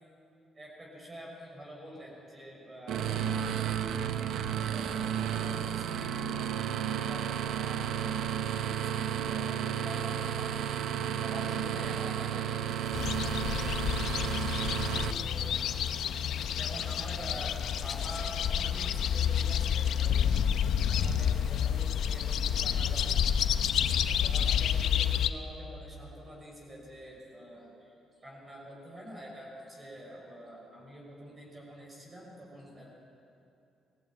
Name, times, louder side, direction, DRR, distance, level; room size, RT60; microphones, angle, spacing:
voice 1, 0.5-10.6 11.1-14.0 15.2-15.5 16.6-20.3 20.9-23.2 24.0-27.9 28.2-32.9, equal, 30° right, -3 dB, 6.1 m, -47 dB
sound 1, 2.9-15.1, right 9 dB, 80° right, 0.7 m, -32 dB
Chewing mastication, 11.6-19.7, left 2 dB, 25° left, 5.2 m, -54 dB
sound 2, 12.9-25.3, left 8 dB, 75° left, 0.7 m, -29 dB
19.5 x 15.0 x 8.9 m, 2.7 s
cardioid pair, 90°, 0 cm